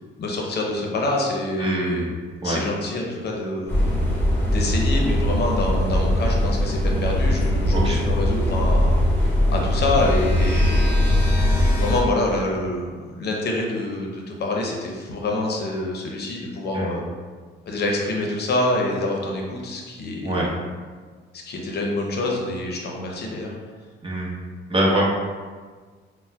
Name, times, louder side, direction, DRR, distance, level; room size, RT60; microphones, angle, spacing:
voice 1, 0.2-2.1 2.4-3.9 4.4-9.0 9.5-11.1 11.8-17.0 17.7-20.5 21.3-23.5, left 2 dB, 55° left, 0 dB, 0.6 m, -26 dB
voice 2, 1.6-2.1 2.4-2.6 7.7-8.0 16.7-17.0 20.2-20.5 24.0-24.3 24.7-25.0, right 1 dB, 25° right, -5 dB, 0.9 m, -24 dB
sound 1, 3.7-12.0, left 1 dB, 10° left, 0.9 m, -20 dB
5.3 x 2.1 x 2.2 m, 1.5 s
cardioid pair, 90°, 20 cm